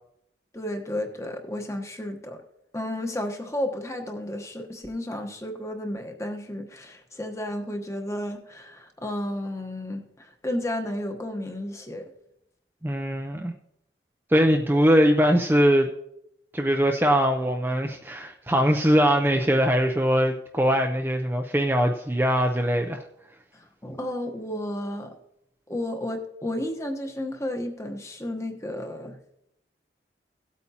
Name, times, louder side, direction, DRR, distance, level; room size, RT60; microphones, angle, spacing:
voice 1, 0.5-2.4 2.7-12.1 23.5-25.1 25.7-29.2, left 1 dB, 15° left, 4 dB, 1.0 m, -32 dB
voice 2, 12.8-13.5 14.3-15.9 16.5-23.0, equal, 10° right, 3 dB, 0.5 m, -21 dB
16.5 x 8.5 x 2.8 m, 0.81 s
head